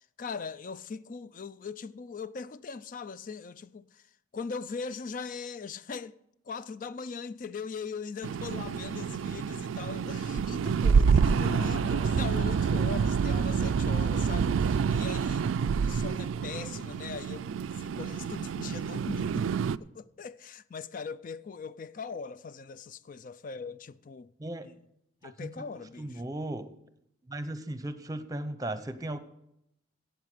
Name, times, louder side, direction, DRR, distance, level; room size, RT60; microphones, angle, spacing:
voice 1, 0.0-6.2 6.4-24.3 24.6-24.7 25.2-26.3, left 5 dB, 45° left, 0.4 m, -40 dB
sound 1, 8.2-19.8, right 6 dB, 90° right, 0.3 m, -28 dB
sound 2, 11.1-15.8, left 2 dB, 75° left, 1.0 m, -44 dB
voice 2, 26.0-26.7 27.3-29.2, right 1 dB, 20° right, 0.8 m, -36 dB
16.0 x 8.0 x 5.0 m
head